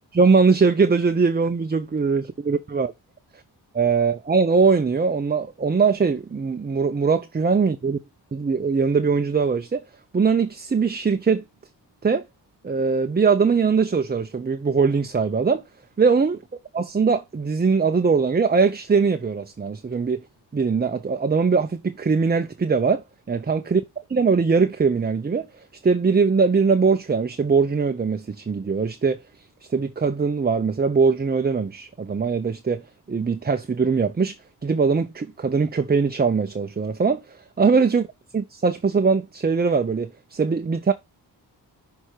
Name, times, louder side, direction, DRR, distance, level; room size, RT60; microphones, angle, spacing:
voice 1, 0.1-2.9 3.7-8.0 8.3-9.8 10.1-11.4 12.0-12.2 12.6-15.6 16.0-16.4 16.7-20.2 20.5-23.0 23.3-23.8 24.1-29.2 29.7-34.3 34.6-38.1 38.3-40.9, right 5 dB, 20° right, 0.6 m, -21 dB
6.5 x 3.5 x 4.4 m
cardioid pair, 45°, 43 cm